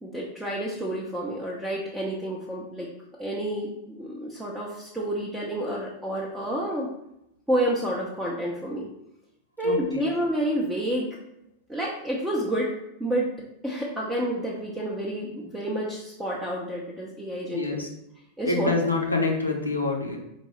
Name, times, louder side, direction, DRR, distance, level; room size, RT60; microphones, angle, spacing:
voice 1, 0.0-2.9 3.2-6.9 7.5-8.9 9.6-11.1 11.7-12.7 13.0-13.3 13.6-17.8 18.4-18.7, right 1 dB, 5° right, -4 dB, 0.6 m, -29 dB
voice 2, 9.6-10.0 17.5-17.9 18.5-20.2, left 3 dB, 80° left, 1 dB, 0.6 m, -26 dB
4.4 x 2.7 x 3.1 m, 0.82 s
figure-of-eight pair, 90°, 0 cm